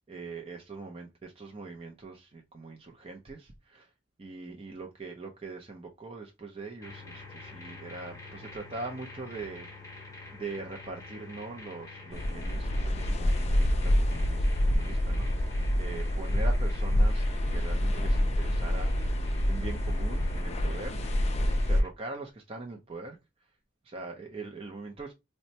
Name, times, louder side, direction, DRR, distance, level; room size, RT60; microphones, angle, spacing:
voice 1, 0.1-3.9 4.2-9.7 9.9-21.0 21.5-23.2 23.8-25.1, right 3 dB, 30° right, 0.5 m, -42 dB
sound 1, 6.8-21.9, left 3 dB, 15° left, 0.8 m, -47 dB
sound 2, 12.1-21.8, equal, 35° left, 0.4 m, -27 dB
4.1 x 2.2 x 2.7 m
head